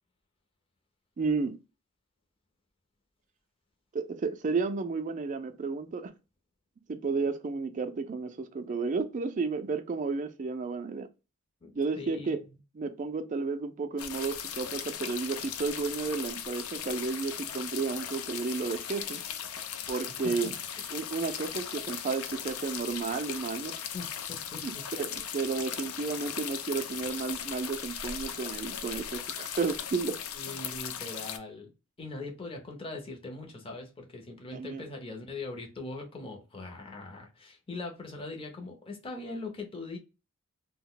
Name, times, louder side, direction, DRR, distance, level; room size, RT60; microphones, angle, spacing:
voice 1, 1.2-1.6 3.9-6.1 6.9-11.1 11.8-12.4 12.8-19.2 19.9-20.5 20.9-23.8 24.6-24.7 25.0-30.2 34.5-34.9, right 4 dB, 35° right, 0.3 m, -32 dB
voice 2, 12.0-12.6 20.2-20.5 23.9-24.9 30.3-31.7 32.0-40.0, left 3 dB, 25° left, 0.6 m, -41 dB
sound 1, 14.0-31.4, left 8 dB, 80° left, 0.4 m, -38 dB
2.3 x 2.1 x 3.7 m
head